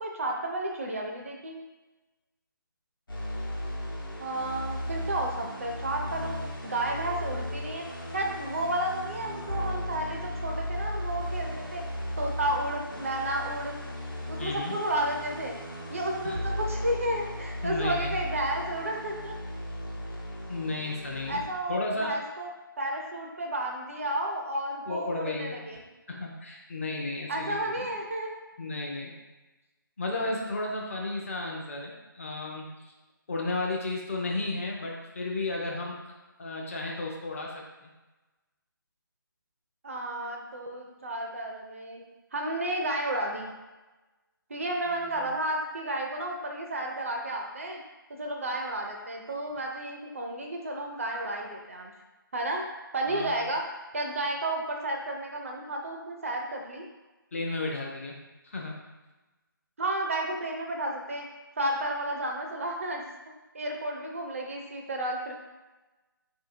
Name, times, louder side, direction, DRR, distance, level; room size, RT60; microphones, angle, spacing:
voice 1, 0.0-1.6 4.2-6.4 6.6-7.8 8.1-11.8 12.2-13.8 14.3-15.6 15.9-19.4 21.3-22.5 22.8-25.8 27.3-28.4 39.8-42.0 42.3-43.5 44.5-47.8 48.1-51.9 52.3-52.6 52.9-53.6 53.9-56.8 59.8-61.3 61.6-63.1 63.5-65.3, right 1 dB, 40° right, 1 dB, 0.4 m, -32 dB
sound 1, 3.1-21.5, left 1 dB, 70° left, 1.0 m, -36 dB
voice 2, 14.4-14.7 16.2-16.4 17.6-18.2 20.5-21.4 21.7-22.1 24.9-25.6 26.1-27.9 28.6-29.1 30.0-32.9 33.3-36.0 36.4-37.9 44.9-45.3 53.1-53.4 57.3-58.2 58.4-58.8, left 2 dB, 40° left, -1 dB, 0.6 m, -33 dB
3.9 x 2.7 x 2.5 m, 1.1 s
figure-of-eight pair, 150°, 12 cm